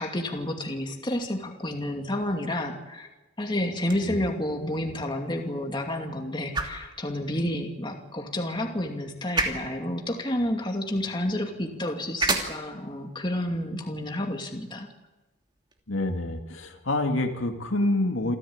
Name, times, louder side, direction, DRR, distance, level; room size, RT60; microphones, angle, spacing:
voice 1, 0.0-3.1 3.4-14.9, left 1 dB, 25° left, 2 dB, 2.5 m, -30 dB
sound 1, 3.7-15.8, right 3 dB, 20° right, 2.9 m, -36 dB
voice 2, 15.9-18.4, left 2 dB, 80° left, 3 dB, 2.5 m, -27 dB
27.5 x 15.0 x 8.9 m, 1.1 s
head